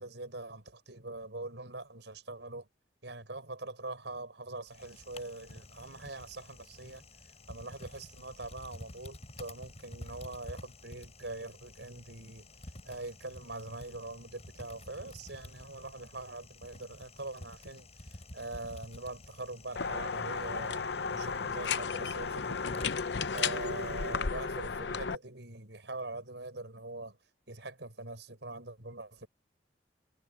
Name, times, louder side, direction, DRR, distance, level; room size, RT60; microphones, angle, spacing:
voice 1, 0.0-2.7 3.0-7.0 7.5-27.2 27.5-29.3, right 2 dB, 85° right, 5.6 m, -43 dB
Typing, 4.7-24.3, left 1 dB, 40° left, 7.3 m, -51 dB
sound 1, 19.8-25.2, left 5 dB, 75° left, 0.7 m, -34 dB
head